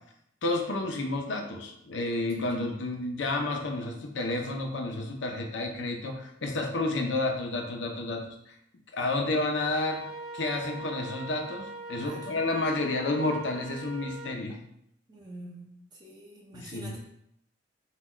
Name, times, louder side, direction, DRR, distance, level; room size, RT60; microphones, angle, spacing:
voice 1, 0.4-8.5 8.9-10.1 10.3-14.6 16.5-17.0, left 2 dB, 75° left, 4 dB, 0.7 m, -30 dB
Wind instrument woodwind instrument, 9.5-14.4, right 2 dB, 55° right, 0.9 m, -41 dB
voice 2, 15.1-15.7 16.0-17.0, right 1 dB, 20° right, -4 dB, 0.7 m, -45 dB
4.1 x 2.3 x 4.2 m, 0.75 s
head